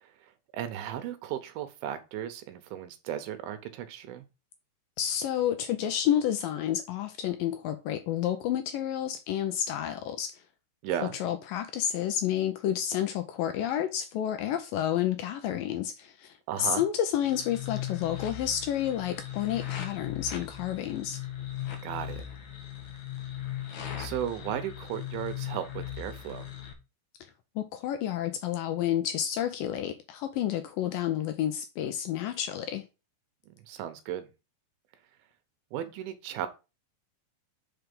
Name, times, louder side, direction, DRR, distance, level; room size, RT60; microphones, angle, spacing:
voice 1, 0.5-4.2 10.8-11.2 16.5-16.8 21.8-22.2 24.0-26.5 33.7-34.3 35.7-36.5, right 10 dB, 75° right, 2.6 m, -35 dB
voice 2, 5.0-10.4 11.2-21.2 27.6-32.8, left 10 dB, 80° left, 2.1 m, -30 dB
sound 1, 17.2-26.7, left 11 dB, 65° left, 2.0 m, -38 dB
5.8 x 4.6 x 5.3 m
omnidirectional pair, 4.6 m